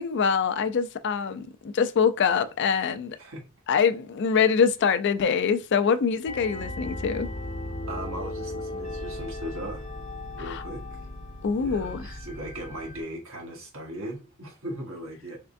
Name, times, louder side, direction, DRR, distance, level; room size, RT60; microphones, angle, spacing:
voice 1, 0.0-3.2 3.7-7.3 10.5-10.6 11.4-12.1, left 6 dB, 55° left, 0.4 m, -24 dB
sound 1, 6.3-13.0, left 1 dB, 35° left, 0.9 m, -36 dB
voice 2, 7.9-9.8 10.4-10.8 11.5-15.4, right 1 dB, 75° right, 1.4 m, -38 dB
3.6 x 3.4 x 2.5 m
head